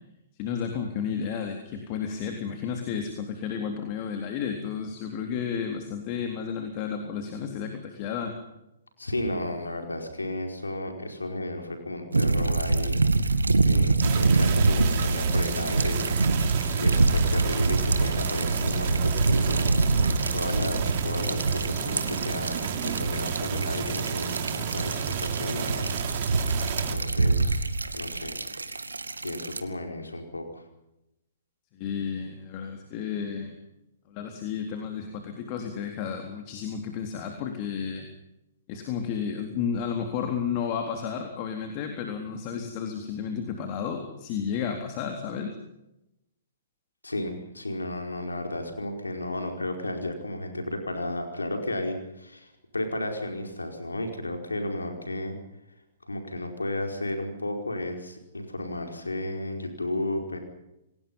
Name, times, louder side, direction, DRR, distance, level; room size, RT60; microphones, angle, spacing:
voice 1, 0.4-8.4 31.7-33.6 34.1-38.1 38.7-45.6, left 7 dB, 40° left, 4 dB, 3.7 m, -32 dB
voice 2, 9.0-13.0 13.6-16.2 16.7-20.1 20.3-25.9 26.7-27.6 28.0-28.3 29.2-30.6 47.0-55.4 56.0-60.4, left 1 dB, 85° left, 4 dB, 4.8 m, -33 dB
sound 1, 12.1-29.6, right 3 dB, 85° right, 2.1 m, -25 dB
sound 2, 14.0-27.0, right 8 dB, 45° right, 3.4 m, -32 dB
28.5 x 19.5 x 5.6 m, 0.89 s
figure-of-eight pair, 120°, 0 cm